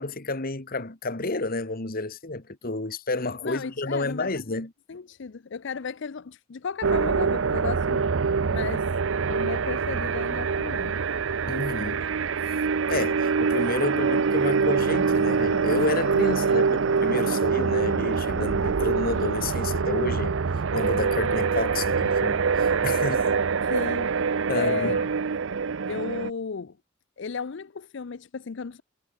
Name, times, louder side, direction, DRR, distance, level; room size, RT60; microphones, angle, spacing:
voice 1, 0.0-4.7 11.5-12.1 12.9-20.3 20.7-23.3 24.5-25.0, left 2 dB, 45° left, 1.9 m, -30 dB
voice 2, 3.4-4.4 4.9-8.9 9.2-11.0 23.6-24.2 24.5-25.0 25.9-26.8 27.2-28.8, left 5 dB, 65° left, 0.5 m, -34 dB
sound 1, 6.8-26.3, right 5 dB, 70° right, 0.6 m, -25 dB
head